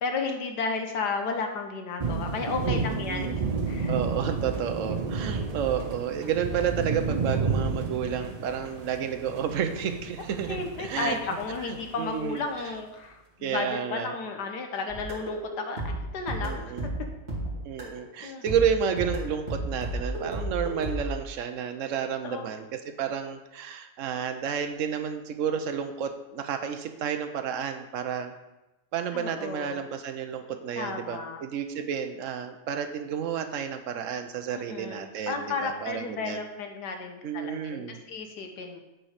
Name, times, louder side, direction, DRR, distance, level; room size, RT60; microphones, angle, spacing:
voice 1, 0.0-3.9 5.3-5.5 10.5-15.8 16.1-16.9 18.2-18.4 22.2-22.5 29.1-29.8 30.8-31.4 34.5-38.8, left 4 dB, 75° left, 4 dB, 1.5 m, -33 dB
sound 1, 2.0-12.1, right 4 dB, 80° right, 0.3 m, -31 dB
voice 2, 2.6-3.4 3.9-11.2 11.7-12.4 13.4-14.1 16.4-16.9 17.6-28.3 28.9-36.4 37.2-38.0, right 8 dB, 60° right, 7 dB, 0.9 m, -31 dB
sound 2, 14.9-18.1 18.5-21.1, right 1 dB, 25° right, 2.4 m, -33 dB
8.8 x 4.5 x 4.9 m, 1.0 s
omnidirectional pair, 1.9 m